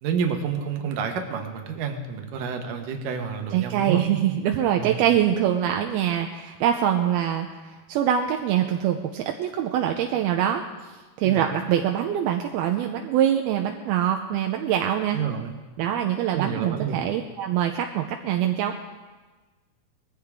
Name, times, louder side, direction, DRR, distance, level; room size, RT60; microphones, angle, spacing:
voice 1, 0.0-4.0 4.8-5.0 11.2-11.4 15.1-15.6 16.3-17.0, right 6 dB, 65° right, 4 dB, 2.7 m, -29 dB
voice 2, 3.5-10.6 11.2-15.2 15.8-18.7, right 10 dB, 80° right, 4 dB, 2.5 m, -24 dB
21.0 x 15.0 x 3.6 m, 1.3 s
omnidirectional pair, 4.7 m